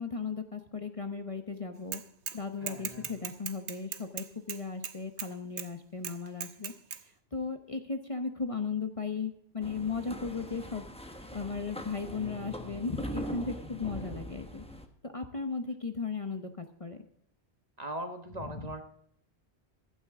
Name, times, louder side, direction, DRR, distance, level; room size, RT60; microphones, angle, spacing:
voice 1, 0.0-2.0 2.3-6.7 7.3-10.9 11.3-14.6 15.0-17.0 18.4-18.7, left 4 dB, 30° left, 6 dB, 1.0 m, -36 dB
Bicycle / Mechanisms, 1.9-2.4 2.7-5.3 5.6-5.7 6.0-7.0, right 8 dB, 85° right, 1.2 m, -38 dB
voice 2, 2.6-3.3 17.8-18.8, right 1 dB, 35° right, 6 dB, 1.4 m, -40 dB
sound 1, 9.6-14.9, equal, 5° left, 1.1 m, -41 dB
15.5 x 12.0 x 3.7 m, 0.68 s
omnidirectional pair, 1.1 m